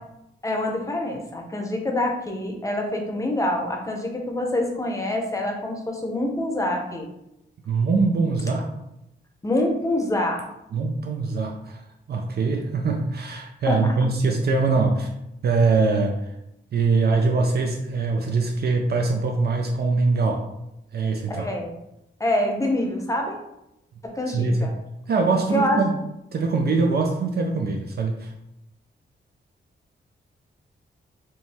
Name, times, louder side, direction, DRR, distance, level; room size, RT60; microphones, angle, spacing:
voice 1, 0.4-7.1 9.4-10.4 13.7-13.9 21.3-21.7 22.2-23.4 24.0-24.7 25.5-25.8, left 1 dB, 15° left, 2 dB, 0.7 m, -26 dB
voice 2, 7.7-8.6 10.7-11.8 12.1-15.1 15.4-16.2 16.7-20.5 20.9-21.5 24.3-24.8 25.1-25.9 26.3-28.3, right 3 dB, 55° right, 2 dB, 0.5 m, -22 dB
4.4 x 3.0 x 3.5 m, 0.86 s
wide cardioid pair, 155°, 20 cm